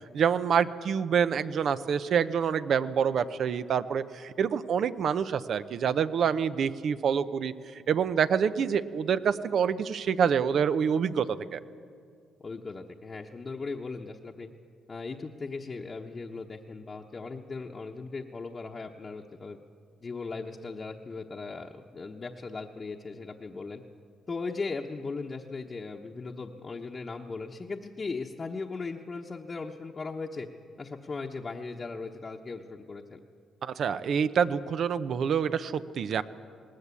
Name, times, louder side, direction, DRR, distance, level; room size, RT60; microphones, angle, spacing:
voice 1, 0.1-7.5 7.9-11.6 33.6-36.2, right 7 dB, 60° right, 12 dB, 0.8 m, -27 dB
voice 2, 12.4-14.5 14.9-19.6 20.0-23.8 24.3-30.5 30.8-33.2, left 4 dB, 35° left, -1 dB, 1.0 m, -38 dB
19.5 x 18.5 x 8.4 m, 2.2 s
cardioid pair, 90°, 0 cm